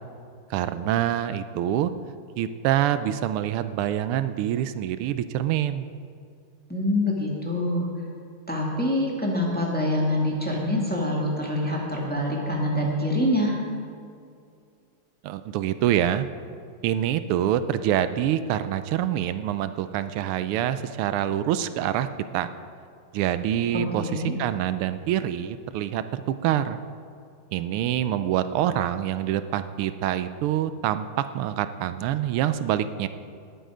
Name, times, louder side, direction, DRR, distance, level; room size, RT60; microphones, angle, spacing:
voice 1, 0.5-1.9 2.4-5.9 15.2-16.3 16.8-22.1 22.3-22.5 23.1-26.8 27.5-33.1, right 11 dB, 85° right, 12 dB, 1.5 m, -26 dB
voice 2, 6.7-7.9 8.5-13.6 23.7-24.3, left 1 dB, 5° left, -3 dB, 1.8 m, -25 dB
19.0 x 7.9 x 5.0 m, 2.4 s
omnidirectional pair, 2.4 m